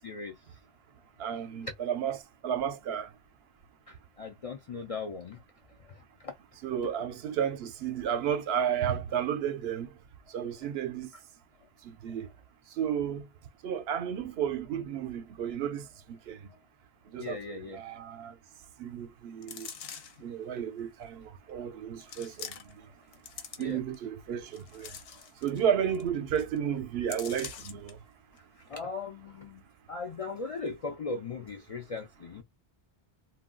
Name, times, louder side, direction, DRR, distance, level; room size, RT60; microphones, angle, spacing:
voice 1, 0.0-0.4 3.9-5.4 5.9-6.3 17.2-17.8 23.6-23.8 24.9-25.3 28.7-29.6 29.9-32.4, left 4 dB, 55° left, 0.4 m, -38 dB
voice 2, 1.2-2.2 2.4-3.1 6.6-9.9 10.3-11.1 11.8-12.3 12.7-13.3 13.6-16.5 17.1-18.4 18.8-19.7 20.2-22.9 23.6-25.0 25.4-28.0, right 8 dB, 80° right, 0.8 m, -32 dB
sound 1, 19.4-20.3 21.0-21.1 22.0-22.8 23.1-23.9 24.4-25.6 25.9-26.1 26.4-26.6 27.1-27.9 28.4-28.5, left 7 dB, 70° left, 0.8 m, -44 dB
2.2 x 2.1 x 3.6 m
omnidirectional pair, 1.0 m